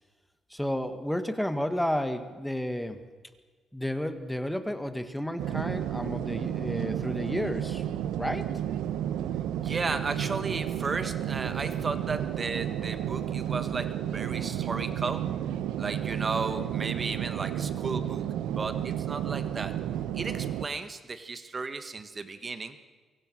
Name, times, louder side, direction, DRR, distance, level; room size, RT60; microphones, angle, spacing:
voice 1, 0.5-3.0 3.7-7.8 8.2-8.5, equal, 5° left, 9 dB, 1.7 m, -31 dB
sound 1, 5.4-20.7, right 10 dB, 90° right, 1.0 m, -32 dB
voice 2, 9.6-15.5 15.8-19.8 20.1-22.8, right 4 dB, 35° right, 10 dB, 1.6 m, -34 dB
24.0 x 23.5 x 6.3 m, 1.4 s
cardioid pair, 90°, 0 cm